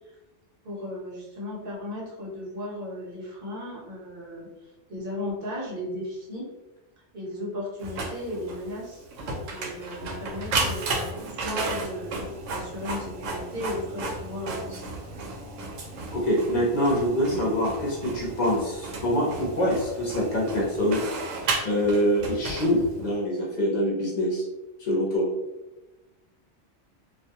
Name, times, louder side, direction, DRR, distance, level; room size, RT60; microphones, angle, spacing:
voice 1, 0.6-4.5 4.9-6.5 7.1-9.1 9.5-14.9 17.3-17.5, left 1 dB, 55° right, -4 dB, 0.9 m, -35 dB
Printer, 7.8-23.2, right 3 dB, 85° right, 0.9 m, -34 dB
voice 2, 16.1-21.0 21.6-24.4 24.8-25.3, equal, 45° left, -4 dB, 0.7 m, -25 dB
2.4 x 2.2 x 2.7 m, 1.0 s
omnidirectional pair, 1.3 m